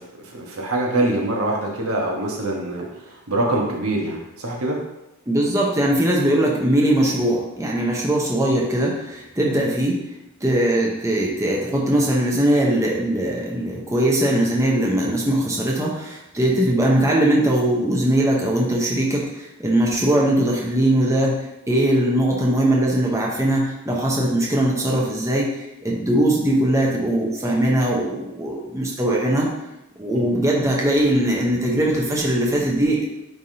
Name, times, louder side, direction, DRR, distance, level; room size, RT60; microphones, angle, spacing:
voice 1, 0.0-4.8 30.1-30.3, right 1 dB, 80° right, -1 dB, 1.3 m, -24 dB
voice 2, 5.3-10.0 10.4-21.4 21.7-29.5 30.0-33.0, right 1 dB, 15° right, -3 dB, 0.9 m, -20 dB
9.4 x 3.5 x 2.8 m, 0.90 s
head